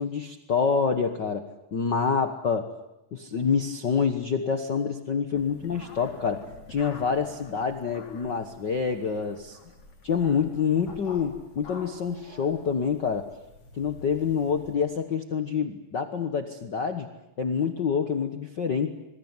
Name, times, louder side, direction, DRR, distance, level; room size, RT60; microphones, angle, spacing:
voice 1, 0.0-2.7 3.1-9.6 10.0-13.3 13.8-17.1 17.4-18.9, left 6 dB, 85° left, 7 dB, 0.9 m, -27 dB
sound 1, 5.3-14.7, left 3 dB, 40° left, 4.6 m, -47 dB
26.5 x 22.5 x 9.6 m, 0.92 s
omnidirectional pair, 4.2 m